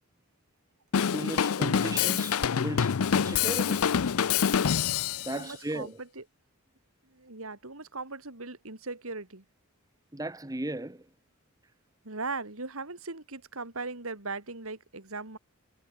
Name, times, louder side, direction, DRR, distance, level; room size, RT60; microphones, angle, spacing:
Drum kit / Drum, 0.9-5.3, left 7 dB, 75° left, 0.5 m, -26 dB
voice 1, 1.1-3.9 5.2-5.9 10.1-11.1, right 1 dB, 15° right, 1.0 m, -36 dB
voice 2, 5.3-6.2 7.0-9.4 12.0-15.4, right 3 dB, 70° right, 2.8 m, -39 dB
head